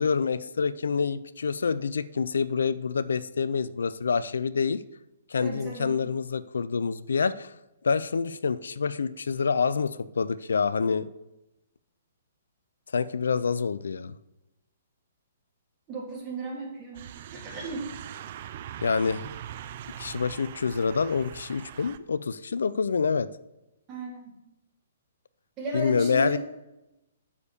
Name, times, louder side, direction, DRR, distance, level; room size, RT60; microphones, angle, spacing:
voice 1, 0.0-4.8 5.3-7.5 7.8-11.1 12.9-14.1 18.8-19.2 20.0-23.3 25.7-26.4, left 5 dB, 75° left, 16 dB, 0.3 m, -27 dB
voice 2, 5.4-5.9 15.9-17.9 23.9-24.3 25.6-26.4, right 2 dB, 30° right, -3 dB, 3.0 m, -35 dB
sound 1, 16.9-22.0, right 11 dB, 50° right, 0.4 m, -42 dB
6.7 x 4.8 x 6.8 m, 0.95 s
hypercardioid pair, 130°, 0 cm